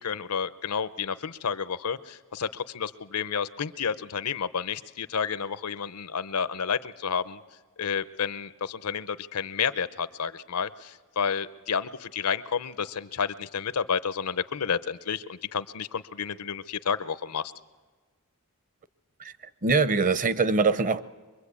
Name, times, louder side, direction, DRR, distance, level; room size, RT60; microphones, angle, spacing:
voice 1, 0.0-7.4 7.8-17.5, left 6 dB, 90° left, 15 dB, 0.7 m, -30 dB
voice 2, 19.6-21.0, right 4 dB, 35° right, 15 dB, 0.7 m, -23 dB
24.0 x 22.5 x 8.4 m, 1.4 s
head